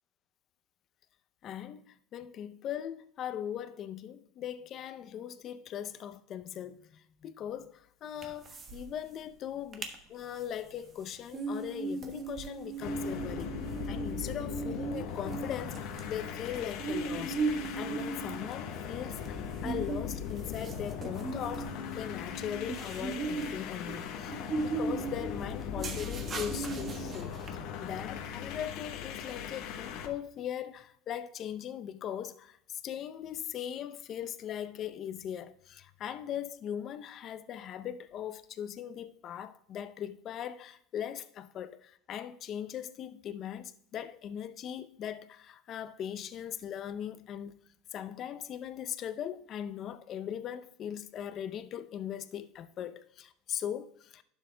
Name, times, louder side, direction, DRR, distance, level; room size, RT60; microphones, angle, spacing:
voice 1, 1.4-13.5 13.9-47.5 47.9-54.2, left 9 dB, 40° left, 0.6 m, -40 dB
sound 1, 8.2-8.8 9.1-9.2 9.5-9.9 10.4-27.5, right 3 dB, 30° right, 1.2 m, -37 dB
sound 2, 12.8-30.1, left 7 dB, 60° left, 0.9 m, -39 dB
11.0 x 7.2 x 2.2 m
supercardioid pair, 120°, 0 cm